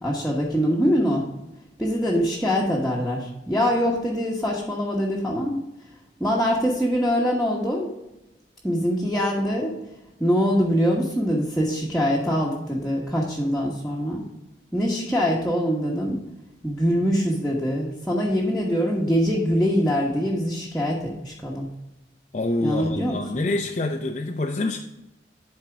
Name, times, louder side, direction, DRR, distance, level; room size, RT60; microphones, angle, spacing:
voice 1, 0.0-1.2 1.8-5.6 6.2-7.9 8.6-9.7 10.2-14.2 14.7-16.2 16.6-21.7 22.6-23.4, equal, ahead, -6 dB, 1.2 m, -23 dB
voice 2, 22.3-24.8, left 2 dB, 40° left, 2 dB, 0.5 m, -26 dB
11.5 x 4.4 x 3.5 m, 0.93 s
head